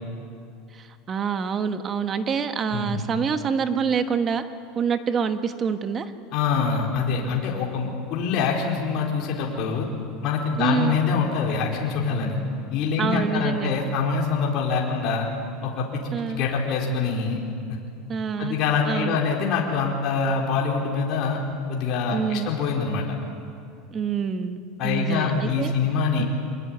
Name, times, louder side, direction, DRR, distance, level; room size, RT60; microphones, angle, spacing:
voice 1, 0.7-4.5 4.7-6.1 10.6-11.0 13.0-13.8 16.1-16.4 18.1-18.6 18.8-19.2 22.1-22.5 23.9-25.7, right 6 dB, 30° right, 9 dB, 1.3 m, -26 dB
voice 2, 6.3-9.9 10.2-12.4 12.7-15.3 15.6-16.0 16.3-17.4 18.4-21.4 21.7-23.0 24.8-26.2, left 5 dB, 50° left, -2 dB, 4.4 m, -25 dB
25.0 x 21.0 x 9.4 m, 2.4 s
supercardioid pair, 145°, 0 cm